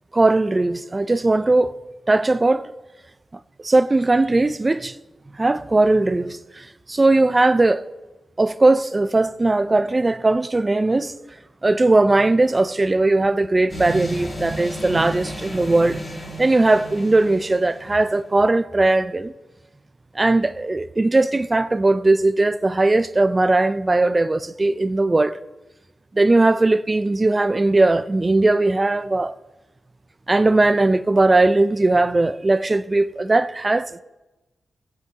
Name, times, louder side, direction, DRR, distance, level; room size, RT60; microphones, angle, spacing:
voice 1, 0.1-1.7 2.1-2.7 3.6-5.0 5.3-7.8 8.4-11.1 11.6-16.0 16.4-19.3 20.1-25.4 26.1-29.3 30.3-34.0, right 2 dB, 30° right, 0.5 m, -19 dB
sound 1, 13.7-18.1, right 1 dB, 40° left, 3.7 m, -33 dB
20.5 x 7.9 x 2.9 m
cardioid pair, 60°, 0 cm